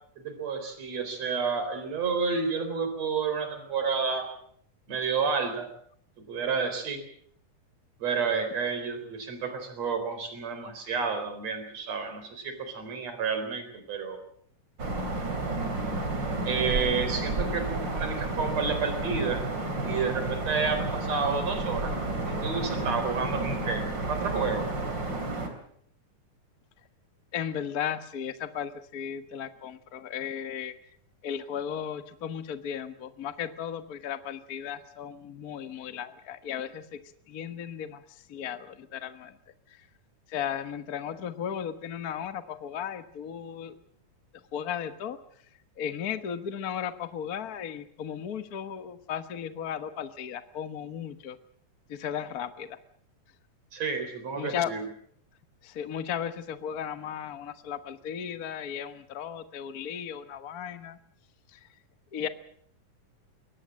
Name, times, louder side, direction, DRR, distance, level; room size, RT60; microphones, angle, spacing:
voice 1, 0.2-4.3 4.9-5.7 6.3-7.0 8.0-14.2 16.5-19.4 19.8-21.9 22.3-23.8 24.1-24.7 53.7-54.8, right 5 dB, 55° right, 8 dB, 5.1 m, -30 dB
sound 1, 14.8-25.5, right 2 dB, 35° right, 3.8 m, -31 dB
voice 2, 27.3-30.7 31.2-37.0 37.3-39.3 39.7-39.9 40.3-43.7 44.5-45.2 45.8-51.4 51.9-52.8 54.4-54.7 55.6-61.0 61.5-61.7 62.1-62.3, left 8 dB, 65° left, 10 dB, 0.8 m, -35 dB
22.5 x 19.0 x 7.6 m, 0.65 s
omnidirectional pair, 3.6 m